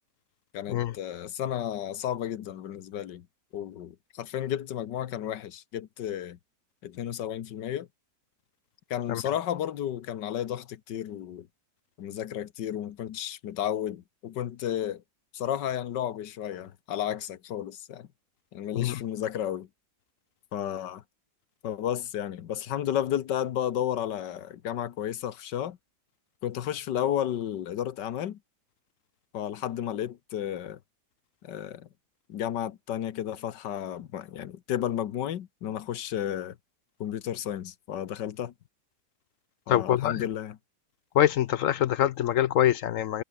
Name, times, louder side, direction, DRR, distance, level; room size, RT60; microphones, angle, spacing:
voice 1, 0.5-3.3 3.5-6.4 6.8-7.9 8.9-11.5 12.0-15.0 15.3-18.1 18.5-19.7 20.5-21.0 21.6-25.8 26.4-28.4 29.3-30.8 31.4-31.9 32.3-36.6 37.0-38.5 39.7-40.6, left 10 dB, 90° left, 1.7 m, -32 dB
voice 2, 39.7-40.3 41.1-43.2, left 11 dB, 70° left, 0.7 m, -24 dB
omnidirectional pair, 1.8 m